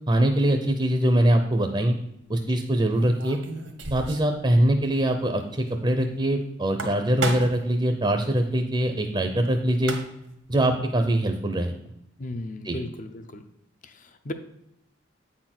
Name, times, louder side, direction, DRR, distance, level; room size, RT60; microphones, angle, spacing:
voice 1, 0.1-2.0 2.3-3.4 3.9-10.0 10.5-11.7 12.6-12.8, right 1 dB, 20° right, 5 dB, 0.6 m, -23 dB
sound 1, 1.4-1.5 2.9-4.4 4.6-4.7 5.1-5.2 6.6-7.7 9.4-9.5 9.7-10.3, right 3 dB, 90° right, 1.3 m, -33 dB
voice 2, 12.2-13.4 13.8-14.3, left 1 dB, 40° left, 9 dB, 0.7 m, -36 dB
8.5 x 4.3 x 6.0 m, 0.80 s
head